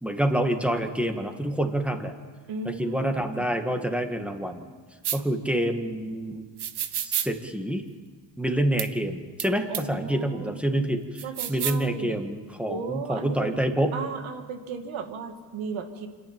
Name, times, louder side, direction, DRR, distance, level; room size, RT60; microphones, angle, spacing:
voice 1, 0.0-2.1 2.7-4.7 5.1-6.5 6.9-7.8 8.4-11.2 11.5-13.9, right 1 dB, 5° right, 5 dB, 2.1 m, -27 dB
voice 2, 2.5-3.5 9.7-10.6 11.2-12.3 12.7-13.6 13.9-16.1, right 5 dB, 80° right, 6 dB, 2.2 m, -35 dB
sound 1, 5.0-5.2 6.6-7.3 8.8-8.9 9.4-9.5 9.7-9.8 11.2-11.8, right 9 dB, 55° right, 1.2 m, -29 dB
26.5 x 11.0 x 9.1 m, 1.5 s
cardioid pair, 85°, 47 cm